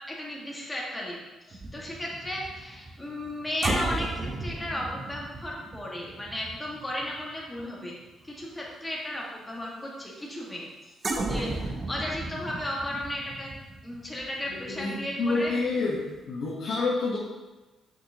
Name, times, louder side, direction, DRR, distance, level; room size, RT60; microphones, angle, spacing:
voice 1, 0.1-1.2 1.5-7.9 8.2-10.9 11.2-13.5 13.8-15.5, left 1 dB, 15° left, -3 dB, 1.7 m, -35 dB
sound 1, 1.5-8.1 8.4-8.7 11.0-15.7 15.9-16.1, right 2 dB, 35° right, 0.7 m, -35 dB
voice 2, 14.5-16.0 16.3-17.2, left 3 dB, 65° left, -6 dB, 1.1 m, -28 dB
5.9 x 5.7 x 2.9 m, 1.1 s
cardioid pair, 90°, 0 cm